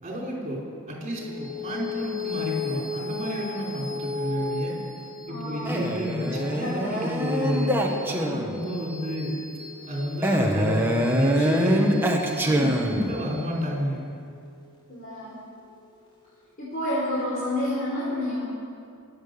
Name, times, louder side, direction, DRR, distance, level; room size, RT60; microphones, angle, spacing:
voice 1, 0.0-4.7 5.3-7.7 8.1-9.3 9.9-12.0 12.4-14.0, equal, 35° right, -3 dB, 4.6 m, -30 dB
sound 1, 1.1-15.8, left 4 dB, 20° left, 2.4 m, -37 dB
voice 2, 5.3-5.8 6.3-7.1 11.3-11.4 12.7-12.8 14.9-15.3 16.6-18.4, left 1 dB, 40° left, -9 dB, 4.5 m, -30 dB
Male speech man speaking, 5.7-8.7 10.2-13.2, equal, 10° right, 1.5 m, -24 dB
23.5 x 8.9 x 7.0 m, 2.3 s
head